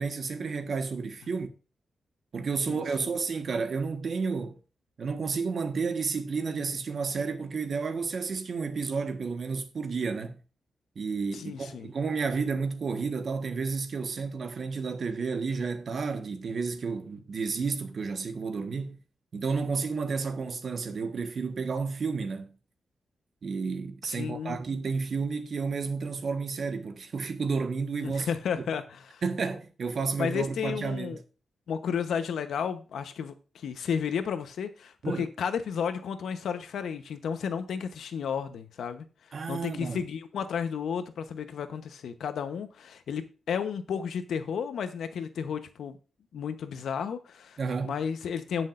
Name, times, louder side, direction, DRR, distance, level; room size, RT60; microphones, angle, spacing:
voice 1, 0.0-1.5 2.3-4.6 5.0-10.4 10.9-19.0 19.3-22.5 23.4-28.3 29.2-31.2 35.0-35.3 39.3-40.0 47.6-48.0, right 4 dB, 55° right, 1.4 m, -31 dB
voice 2, 2.7-3.1 11.3-11.9 24.1-24.6 28.0-29.2 30.2-31.2 31.7-39.0 39.5-46.0 46.3-48.7, left 7 dB, 85° left, 1.0 m, -33 dB
17.5 x 6.3 x 2.6 m
wide cardioid pair, 110°, 0 cm